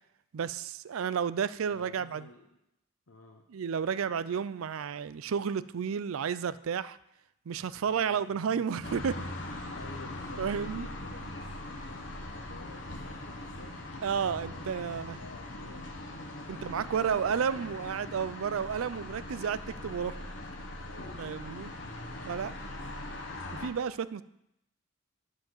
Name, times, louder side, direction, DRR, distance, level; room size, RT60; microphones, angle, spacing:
voice 1, 0.3-2.3 3.5-7.0 7.5-9.2 10.4-10.9 14.0-15.2 16.5-20.2 21.2-21.7 22.3-22.5 23.6-24.2, right 7 dB, 75° right, 17 dB, 0.4 m, -32 dB
voice 2, 1.7-2.5 3.1-3.4 7.8-8.7 9.5-15.9 16.4-17.6 20.8-23.1, left 3 dB, 75° left, 1 dB, 0.9 m, -53 dB
sound 1, 8.8-23.7, left 1 dB, 60° left, 1.2 m, -41 dB
10.5 x 4.8 x 7.6 m, 0.83 s
head